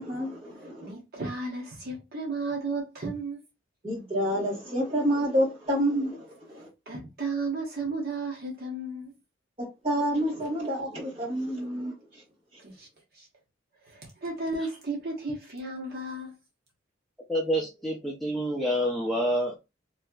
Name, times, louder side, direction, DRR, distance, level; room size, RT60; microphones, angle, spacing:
voice 1, 0.0-0.9 3.8-6.7 9.6-12.2, equal, 30° right, 1.8 m, -29 dB
voice 2, 0.8-3.4 6.9-9.1 12.6-12.9 13.1-13.3 13.9-16.3, right 3 dB, 50° right, 1.1 m, -34 dB
voice 3, 17.3-19.6, equal, ahead, 0.5 m, -27 dB
3.1 x 2.8 x 2.3 m
head